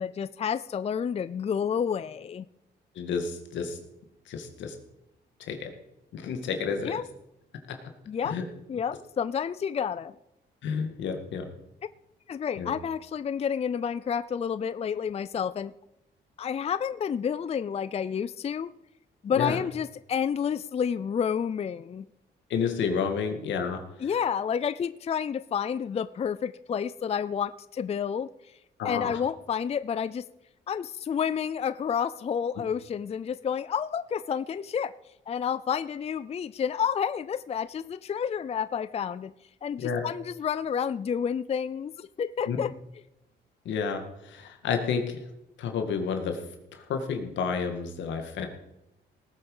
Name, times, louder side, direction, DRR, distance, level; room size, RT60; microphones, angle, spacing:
voice 1, 0.0-2.4 6.8-7.0 8.1-8.4 8.7-10.1 12.3-15.7 16.4-18.7 19.2-22.1 24.0-28.3 28.8-30.2 30.7-34.9 35.3-39.3 39.6-42.7, left 7 dB, 35° left, 16 dB, 0.4 m, -30 dB
voice 2, 3.0-3.8 4.3-4.8 5.4-5.7 6.1-7.0 8.2-8.4 10.6-11.5 12.6-12.7 19.4-19.6 22.5-24.1 28.8-29.2 39.8-40.0 42.5-42.6 43.7-45.2 45.6-46.4 46.7-48.5, left 6 dB, 85° left, 5 dB, 2.0 m, -30 dB
18.5 x 7.9 x 5.5 m, 0.90 s
cardioid pair, 90°, 19 cm